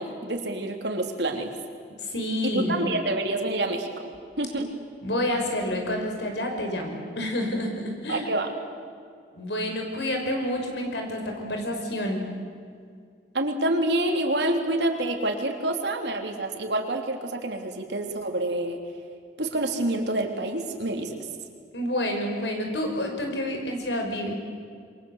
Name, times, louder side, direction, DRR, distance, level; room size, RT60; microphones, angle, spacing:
voice 1, 0.0-1.5 2.4-3.9 4.4-4.7 8.1-8.5 13.3-18.8 19.4-21.2, right 1 dB, 75° right, 3 dB, 3.4 m, -27 dB
voice 2, 2.0-2.8 5.0-8.3 9.3-12.2 21.7-24.3, left 1 dB, 80° left, 3 dB, 6.0 m, -29 dB
27.0 x 23.5 x 8.1 m, 2.2 s
head